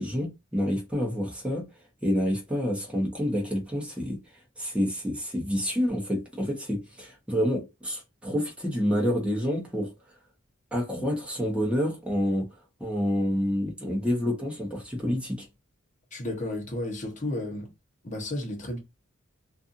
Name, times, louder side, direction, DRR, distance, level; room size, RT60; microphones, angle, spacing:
voice 1, 0.0-1.7 2.0-4.2 4.6-9.9 10.7-12.5 12.8-15.5, equal, 5° right, 0.8 m, -28 dB
voice 2, 16.1-17.7 18.0-18.8, left 1 dB, 35° left, 0.9 m, -32 dB
2.5 x 2.5 x 2.5 m
head